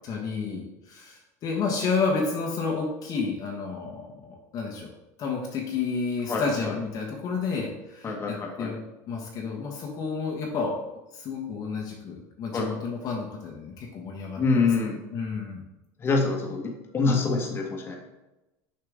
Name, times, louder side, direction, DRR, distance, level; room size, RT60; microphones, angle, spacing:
voice 1, 0.0-4.9 5.2-8.8 9.1-10.8 11.1-14.7 15.1-15.6, left 4 dB, 45° left, 0 dB, 1.3 m, -31 dB
voice 2, 6.3-6.7 8.0-8.7 12.5-12.8 14.4-15.0 16.0-18.0, left 4 dB, 25° left, 0 dB, 1.5 m, -26 dB
6.7 x 5.7 x 3.7 m, 0.98 s
supercardioid pair, 125°, 9 cm